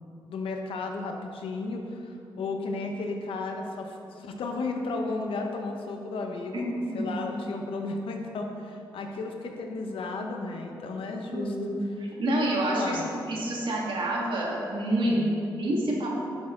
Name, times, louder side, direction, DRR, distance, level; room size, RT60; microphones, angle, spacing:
voice 1, 0.3-11.5 12.7-13.1 15.0-15.4, left 3 dB, 80° left, 3 dB, 1.0 m, -34 dB
voice 2, 6.5-7.2 11.3-13.0 13.3-15.2 15.6-16.1, right 1 dB, 70° right, -3 dB, 2.1 m, -28 dB
11.0 x 6.3 x 3.9 m, 2.7 s
cardioid pair, 60°, 9 cm